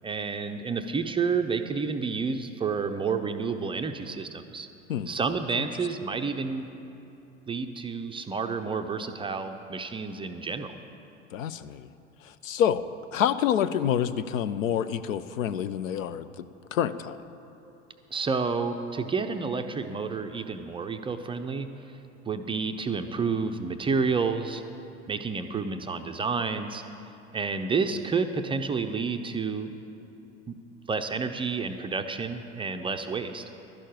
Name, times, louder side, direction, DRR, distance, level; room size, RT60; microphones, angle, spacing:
voice 1, 0.0-4.7 5.1-6.7 7.5-10.7 18.1-21.7 22.3-24.6 25.1-26.8 27.3-29.7 30.5-30.6 30.9-33.4, right 5 dB, 15° right, 6 dB, 0.4 m, -30 dB
voice 2, 11.3-11.9 12.2-12.9 13.1-16.4 16.7-17.2, left 9 dB, 75° left, 13 dB, 0.6 m, -27 dB
12.0 x 6.4 x 9.0 m, 3.0 s
figure-of-eight pair, 75°, 40 cm